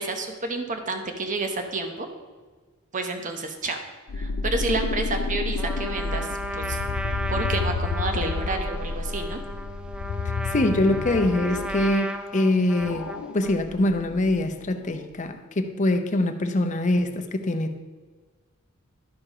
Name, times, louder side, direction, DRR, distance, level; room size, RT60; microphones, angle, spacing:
voice 1, 0.0-2.1 2.9-3.8 4.1-6.8 7.3-9.4, right 3 dB, 40° right, 5 dB, 0.9 m, -30 dB
sound 1, 4.1-11.9 12.8-14.6, left 4 dB, 90° left, 0.4 m, -30 dB
Trumpet, 5.6-13.7, right 1 dB, 5° right, 0.4 m, -35 dB
voice 2, 10.5-13.1 13.3-17.8, left 1 dB, 35° left, 6 dB, 0.7 m, -24 dB
12.0 x 4.6 x 4.9 m, 1.4 s
head